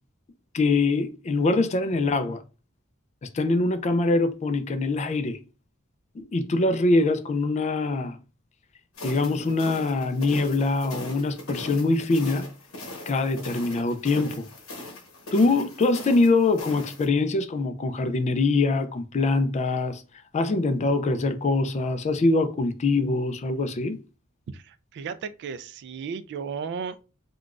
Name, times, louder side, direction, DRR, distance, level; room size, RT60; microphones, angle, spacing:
voice 1, 0.5-2.4 3.2-5.4 6.2-8.2 9.0-12.5 13.1-14.4 15.3-20.0 20.3-24.0, left 3 dB, 30° left, 0.3 m, -23 dB
sound 1, 9.0-17.1, left 1 dB, 75° left, 1.0 m, -40 dB
voice 2, 24.5-27.0, right 6 dB, 55° right, 0.3 m, -35 dB
3.7 x 2.2 x 2.4 m
head